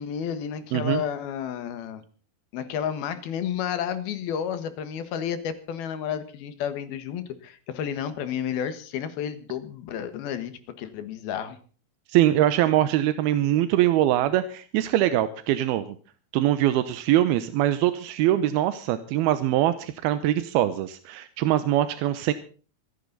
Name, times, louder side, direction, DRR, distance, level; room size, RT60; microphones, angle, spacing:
voice 1, 0.0-2.0 2.5-11.6, left 8 dB, 85° left, 11 dB, 3.4 m, -31 dB
voice 2, 0.7-1.0 12.1-16.0 16.3-22.3, right 13 dB, 85° right, 12 dB, 2.8 m, -23 dB
26.0 x 10.5 x 4.0 m, 0.39 s
omnidirectional pair, 4.3 m